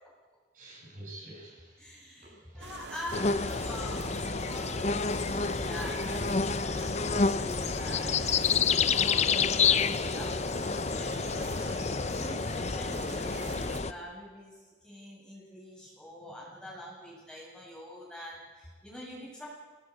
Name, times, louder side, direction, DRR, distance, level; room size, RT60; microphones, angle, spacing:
voice 1, 0.5-2.8 15.4-17.2 17.5-17.6, right 1 dB, 45° right, -2 dB, 7.9 m, -52 dB
voice 2, 1.8-4.8 5.3-10.7 11.0-11.7 12.1-14.5 14.8-19.5, left 1 dB, 5° left, -5 dB, 7.0 m, -45 dB
sound 1, 2.6-13.8, right 3 dB, 75° right, 2.2 m, -45 dB
sound 2, 3.1-13.9, left 5 dB, 40° left, 0.7 m, -29 dB
28.0 x 19.0 x 8.6 m, 1.4 s
head